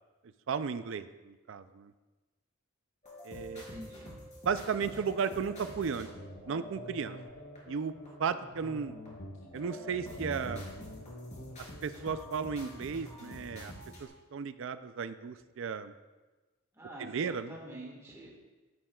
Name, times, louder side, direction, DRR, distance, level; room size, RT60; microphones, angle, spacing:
voice 1, 0.5-1.9 3.2-3.6 4.4-6.1 6.5-7.2 7.7-7.9 8.2-8.9 9.5-10.6 11.8-13.7 14.0-15.9 17.0-17.6, right 6 dB, 65° right, 12 dB, 0.4 m, -34 dB
sound 1, 3.0-7.1 7.6-7.7 8.1-8.8 9.1-14.1, equal, 35° left, 3.4 m, -50 dB
voice 2, 3.5-4.1 16.7-18.3, right 1 dB, 15° right, -3 dB, 1.6 m, -47 dB
sound 2, 4.8-13.1, equal, 20° left, 3.1 m, -51 dB
Guitar, 5.5-14.0, left 1 dB, 85° left, 1.3 m, -48 dB
11.0 x 10.5 x 2.3 m, 1.2 s
head